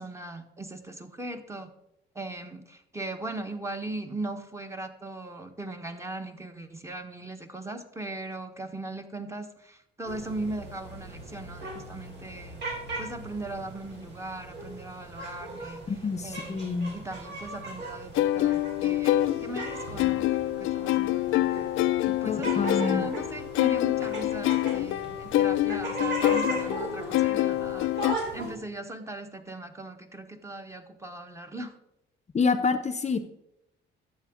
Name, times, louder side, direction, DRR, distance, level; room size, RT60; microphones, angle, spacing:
voice 1, 0.0-1.7 2.1-12.6 13.0-15.8 16.2-16.6 16.9-20.3 20.6-21.7 22.0-31.7, right 2 dB, 15° right, 6 dB, 1.2 m, -39 dB
sound 1, 10.0-28.5, right 2 dB, 60° right, 3.7 m, -38 dB
voice 2, 15.9-17.0 22.3-23.0 32.3-33.2, left 4 dB, 35° left, 10 dB, 0.7 m, -27 dB
sound 2, 18.1-28.1, left 15 dB, 85° left, 0.4 m, -26 dB
12.0 x 7.7 x 3.7 m, 0.82 s
cardioid pair, 90°, 20 cm